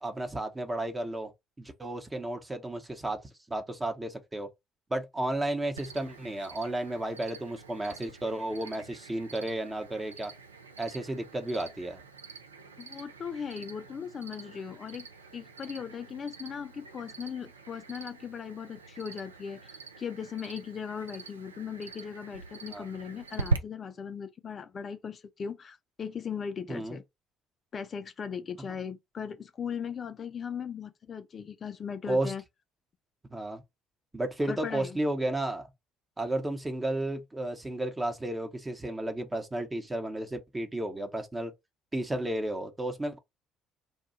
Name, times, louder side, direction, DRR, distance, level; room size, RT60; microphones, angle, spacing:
voice 1, 0.0-1.3 1.6-3.2 3.5-4.5 4.9-10.3 10.8-12.0 22.7-22.8 26.7-27.0 28.6-28.7 32.1-32.3 33.3-33.6 34.1-35.7 36.2-41.5 41.9-43.2, right 1 dB, 20° right, 0.9 m, -33 dB
Cricket, 5.8-23.6, right 4 dB, 85° right, 0.3 m, -42 dB
voice 2, 12.8-15.1 15.3-27.0 27.7-32.4 34.5-35.0, left 7 dB, 40° left, 0.4 m, -38 dB
2.7 x 2.3 x 4.0 m
figure-of-eight pair, 50°, 0 cm